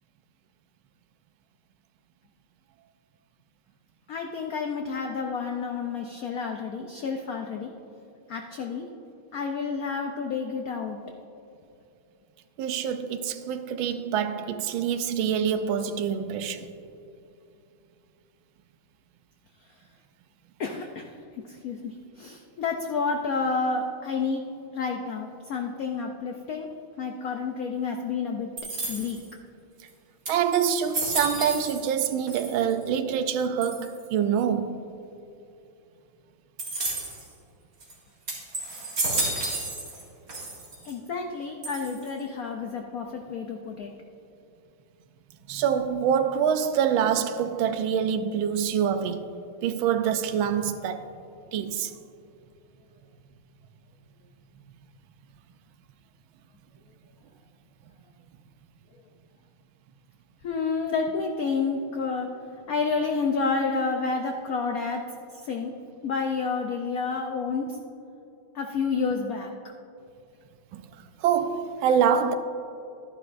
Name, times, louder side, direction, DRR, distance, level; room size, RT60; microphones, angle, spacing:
voice 1, 4.1-7.7 8.3-8.9 9.3-11.0 19.6-19.7 20.6-24.4 24.7-26.7 27.0-28.5 28.9-29.2 40.8-43.9 60.4-62.3 62.7-65.0 65.3-65.7 66.0-67.8 68.5-69.5, left 4 dB, 85° left, 0.7 m, -30 dB
voice 2, 12.6-16.7 30.3-34.8 45.5-49.3 49.6-51.1 51.5-51.9 70.7-70.8 71.2-72.3, right 8 dB, 75° right, 1.3 m, -25 dB
sound 1, 28.6-29.3 29.9-30.0 30.3-32.0 32.3-32.9 33.6-34.1 36.6-37.3 37.8-37.9 38.3-40.0 40.3-40.9 41.6-42.2, right 2 dB, 45° right, 2.5 m, -32 dB
12.5 x 10.5 x 2.5 m
omnidirectional pair, 2.3 m